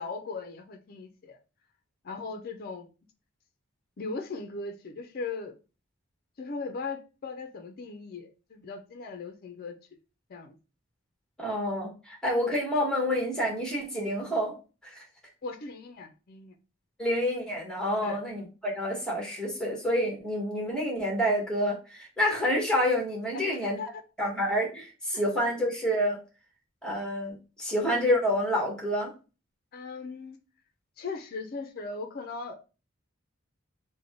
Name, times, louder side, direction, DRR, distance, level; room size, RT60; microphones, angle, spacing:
voice 1, 0.0-1.4 2.0-2.9 4.0-5.6 6.4-9.7 10.3-10.6 11.4-11.5 15.4-16.6 18.0-18.2 23.3-23.9 25.1-25.2 29.7-30.4 31.0-32.6, left 4 dB, 50° left, 7 dB, 0.4 m, -38 dB
voice 2, 11.4-14.5 14.8-15.0 17.0-23.8 24.2-26.2 26.8-29.1, equal, 5° left, -2 dB, 1.2 m, -28 dB
3.5 x 2.1 x 3.6 m, 0.32 s
head